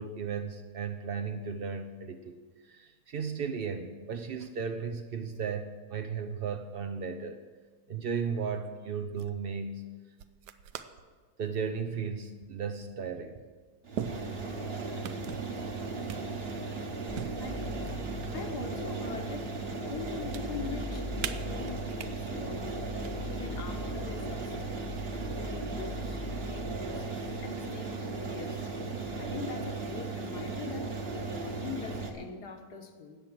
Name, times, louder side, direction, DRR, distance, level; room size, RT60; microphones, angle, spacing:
voice 1, 0.0-2.4 2.7-7.4 7.9-9.8 11.4-13.4, right 6 dB, 70° right, 6 dB, 0.5 m, -35 dB
sound 1, 8.6-8.7 9.1-9.4 10.2-11.1 11.5-11.8 12.8-12.9 13.9-14.7 15.0-15.5 16.1-16.7 17.1-18.5 18.9-19.6 19.9-20.4 21.2-22.1 22.8-23.1 24.2-24.7, right 8 dB, 85° right, 1.3 m, -41 dB
sound 2, 13.8-32.1, right 3 dB, 40° right, 1.3 m, -37 dB
sound 3, 17.1-27.3, left 3 dB, 35° left, 1.0 m, -42 dB
voice 2, 17.4-24.9 25.3-28.7 29.2-33.2, left 4 dB, 70° left, 4 dB, 1.7 m, -43 dB
14.0 x 9.0 x 6.0 m, 1.5 s
omnidirectional pair, 1.8 m